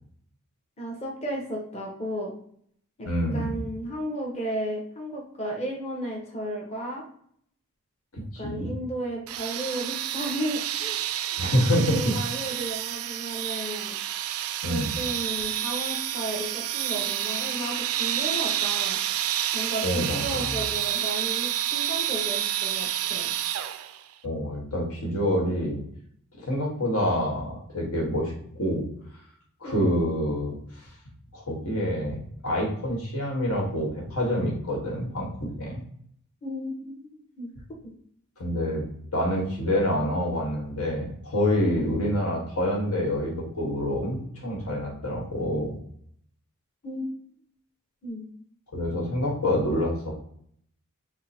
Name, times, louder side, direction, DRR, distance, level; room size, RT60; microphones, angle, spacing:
voice 1, 0.8-2.3 3.0-3.1 3.3-7.0 8.4-11.0 11.3-11.4 11.7-13.9 14.7-19.0 19.5-23.3 29.6-29.9 36.4-37.5 37.8-37.9 46.8-47.1 48.0-48.3, right 1 dB, 30° left, 0 dB, 0.9 m, -34 dB
voice 2, 3.1-3.6 8.3-8.7 11.4-12.3 14.6-14.9 19.8-20.6 24.2-25.8 26.4-28.9 29.6-30.9 31.3-32.2 32.4-35.8 38.4-38.8 39.1-45.8 48.7-50.1, equal, 80° left, -1 dB, 1.3 m, -27 dB
sound 1, 9.3-24.0, right 11 dB, 70° right, 0.3 m, -29 dB
3.7 x 2.1 x 4.2 m, 0.65 s
head